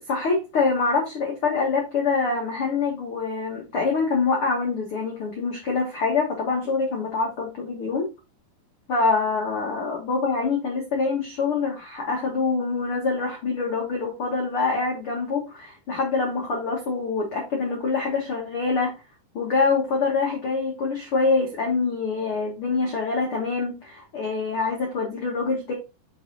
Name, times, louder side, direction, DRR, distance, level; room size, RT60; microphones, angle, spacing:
voice 1, 0.1-8.1 8.9-18.9 19.3-25.7, left 4 dB, 75° left, -1 dB, 1.2 m, -25 dB
6.1 x 5.5 x 4.0 m, 0.28 s
omnidirectional pair, 5.0 m